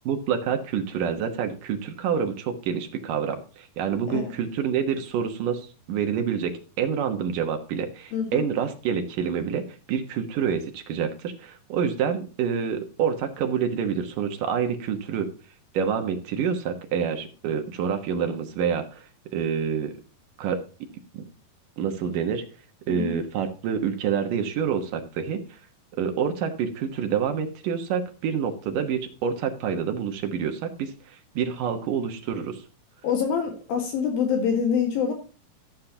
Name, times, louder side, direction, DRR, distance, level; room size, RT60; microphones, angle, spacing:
voice 1, 0.1-9.6 9.9-15.3 15.7-19.0 19.3-20.0 20.4-20.6 21.1-21.2 21.8-22.4 22.9-25.4 26.0-30.9 31.4-32.6, right 7 dB, 65° right, 5 dB, 2.6 m, -27 dB
voice 2, 8.1-8.5 22.9-23.2 33.0-35.1, left 7 dB, 70° left, 3 dB, 3.4 m, -25 dB
14.0 x 7.6 x 2.8 m, 0.37 s
omnidirectional pair, 4.4 m